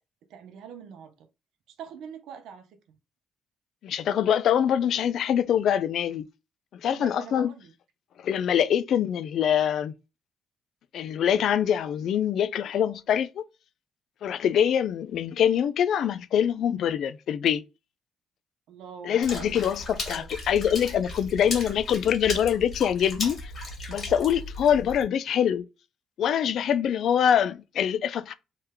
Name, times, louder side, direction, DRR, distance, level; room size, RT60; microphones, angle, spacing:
voice 1, 0.3-1.3 1.7-3.0 6.9-7.7 18.7-20.3 21.1-21.4 24.1-24.3, right 7 dB, 85° right, 0.6 m, -45 dB
voice 2, 3.8-6.3 6.8-7.5 8.2-9.9 10.9-13.4 14.2-17.6 19.0-23.5 23.9-25.7 26.2-28.3, left 9 dB, 70° left, 0.3 m, -24 dB
Water / Splash splatter, 19.2-25.0, left 2 dB, 50° left, 1.7 m, -36 dB
3.2 x 2.2 x 3.3 m
cardioid pair, 90°, 0 cm